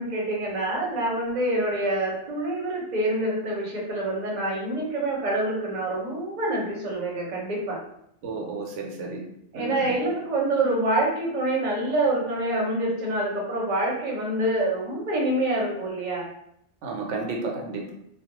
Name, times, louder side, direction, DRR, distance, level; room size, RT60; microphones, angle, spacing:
voice 1, 0.0-7.8 9.5-16.3, right 1 dB, 45° right, -3 dB, 0.7 m, -26 dB
voice 2, 8.2-9.3 9.5-10.0 16.8-17.9, right 3 dB, 85° right, 0 dB, 0.9 m, -32 dB
2.3 x 2.0 x 2.8 m, 0.74 s
omnidirectional pair, 1.2 m